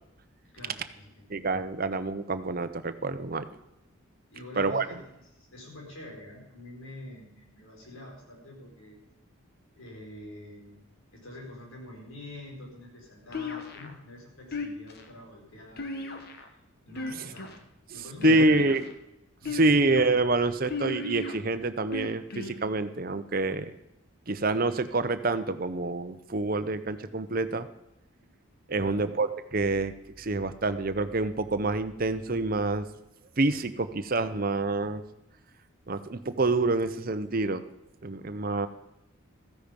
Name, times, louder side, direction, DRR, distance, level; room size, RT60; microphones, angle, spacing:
voice 1, 0.5-1.3 4.3-8.9 9.7-10.8 11.1-16.5 16.9-17.6 17.9-18.5 19.4-19.8 28.7-29.2, left 1 dB, 75° left, -1 dB, 5.0 m, -46 dB
voice 2, 1.3-3.5 4.6-4.9 17.2-17.3 18.2-18.8 19.5-23.7 24.3-27.7 28.7-32.9 33.4-35.0 35.9-37.6 38.0-38.7, right 3 dB, 45° right, 10 dB, 0.7 m, -27 dB
sound 1, 13.3-13.9 14.5-15.1 15.8-16.5 16.9-17.6 18.2-18.9 19.5-20.0 20.7-21.3 21.9-22.6, left 4 dB, 45° left, 1.3 m, -34 dB
14.5 x 10.0 x 5.3 m, 0.88 s
head